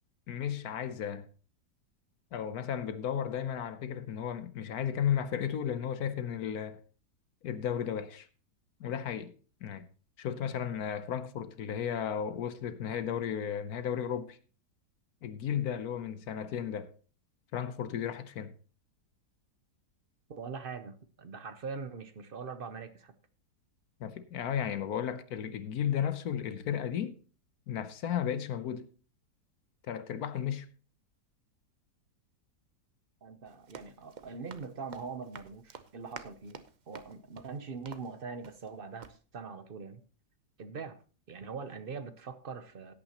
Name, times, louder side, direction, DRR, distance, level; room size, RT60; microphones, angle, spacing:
voice 1, 0.3-1.3 2.3-6.8 7.4-8.3 8.8-9.3 9.6-9.9 10.2-14.4 15.2-16.9 17.5-18.5 24.0-27.2 27.7-28.9 29.9-30.7, left 9 dB, 65° left, 1.2 m, -34 dB
voice 2, 20.3-23.1 33.2-36.6 36.9-40.0 40.6-41.0 41.3-42.9, right 5 dB, 50° right, 0.7 m, -42 dB
Run, 33.4-38.7 39.0-39.2, right 6 dB, 85° right, 0.4 m, -50 dB
17.0 x 8.7 x 2.9 m
omnidirectional pair, 1.8 m